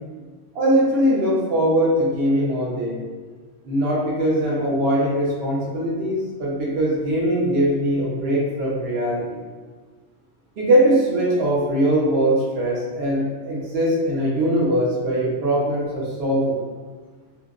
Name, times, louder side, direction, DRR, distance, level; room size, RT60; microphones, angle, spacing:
voice 1, 0.5-3.0 3.7-9.4 10.6-16.7, right 1 dB, 60° right, -5 dB, 0.9 m, -21 dB
2.9 x 2.2 x 2.3 m, 1.4 s
omnidirectional pair, 1.3 m